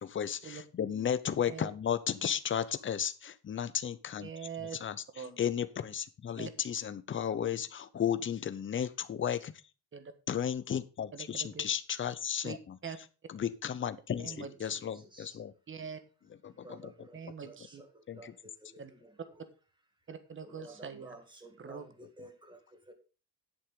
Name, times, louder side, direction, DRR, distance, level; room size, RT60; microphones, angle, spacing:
voice 1, 0.0-4.3 4.7-9.5 10.3-12.8 13.3-15.5 16.4-16.9 18.1-18.3, left 8 dB, 30° left, 13 dB, 0.7 m, -34 dB
voice 2, 4.2-4.8 5.1-5.3 6.4-6.5 9.9-10.1 11.1-11.6 12.4-12.6 12.8-13.0 14.2-14.5 15.7-16.0 17.1-17.8 18.8-18.9 20.1-21.2 21.6-21.9, right 6 dB, 30° right, 10 dB, 1.4 m, -43 dB
voice 3, 14.6-15.4 16.5-19.2 20.4-22.9, right 1 dB, 10° right, 6 dB, 2.2 m, -53 dB
9.8 x 9.0 x 3.7 m, 0.33 s
cardioid pair, 160°, 39 cm